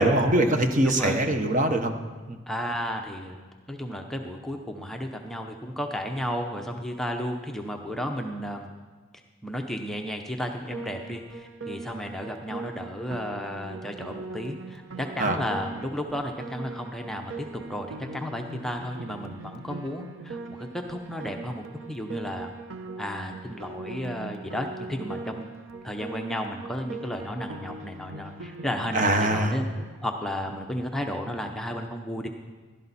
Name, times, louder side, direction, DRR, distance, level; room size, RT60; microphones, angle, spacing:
voice 1, 0.0-1.9 2.3-2.4 15.2-15.4 28.9-29.6, right 1 dB, 40° right, 6 dB, 1.0 m, -22 dB
voice 2, 0.8-1.2 2.5-3.4 3.7-8.7 9.4-22.5 23.0-25.5 25.8-29.6 30.0-32.3, equal, ahead, 2 dB, 0.7 m, -33 dB
Piano, 10.7-29.9, right 3 dB, 90° right, 0.9 m, -40 dB
15.5 x 12.0 x 4.2 m, 1.4 s
head